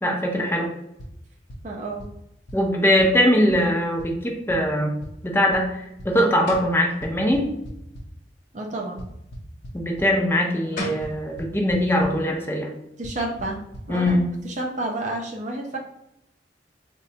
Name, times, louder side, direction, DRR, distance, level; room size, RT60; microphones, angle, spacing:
voice 1, 0.0-0.7 2.5-4.9 5.2-7.5 9.7-12.7 13.9-14.3, equal, 15° left, 0 dB, 0.5 m, -21 dB
sound 1, 1.0-1.1 1.5-1.6 2.0-2.1 2.5-2.6 3.0-3.1 3.5-3.6 4.0-4.1 4.5-4.6 5.0-5.1 5.5-5.6 6.0-6.1 6.5-6.6 7.0-8.0 9.0-10.1 11.0-11.1 11.4-11.8 12.0-12.1 13.0-13.1 13.4-13.5 13.7-13.8 14.1-14.2, equal, 70° left, 0.6 m, -37 dB
voice 2, 1.6-2.0 8.5-9.0 13.0-13.6 13.9-15.8, right 2 dB, 45° right, 2 dB, 0.5 m, -30 dB
sound 2, 6.5-6.8 10.4-10.5 10.8-11.1, left 1 dB, 50° left, 1.0 m, -32 dB
4.1 x 2.1 x 2.8 m, 0.83 s
head